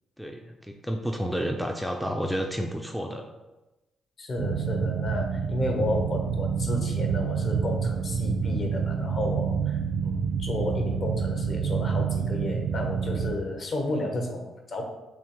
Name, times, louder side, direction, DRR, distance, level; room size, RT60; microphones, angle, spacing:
voice 1, 0.2-3.2, equal, ahead, 3 dB, 0.3 m, -30 dB
voice 2, 4.2-14.8, left 1 dB, 50° left, 2 dB, 0.8 m, -32 dB
sound 1, 4.4-13.4, right 6 dB, 70° right, 0.4 m, -28 dB
5.9 x 2.1 x 3.0 m, 1.1 s
cardioid pair, 90°, 0 cm